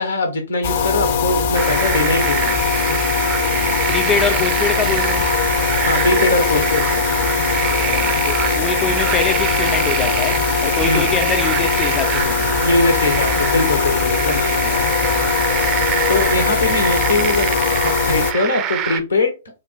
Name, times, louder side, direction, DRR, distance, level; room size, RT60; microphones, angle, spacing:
voice 1, 0.0-2.6 5.8-7.0 10.8-11.1 12.6-14.7 16.1-19.3, left 2 dB, 80° left, 1.6 m, -21 dB
sound 1, 0.6-18.3, left 6 dB, 55° left, 0.8 m, -20 dB
sound 2, 1.5-19.0, right 10 dB, 35° right, 0.5 m, -24 dB
voice 2, 3.5-5.3 7.8-12.8 14.7-15.3, left 6 dB, 20° left, 0.4 m, -25 dB
4.3 x 2.3 x 4.2 m
figure-of-eight pair, 110°, 0 cm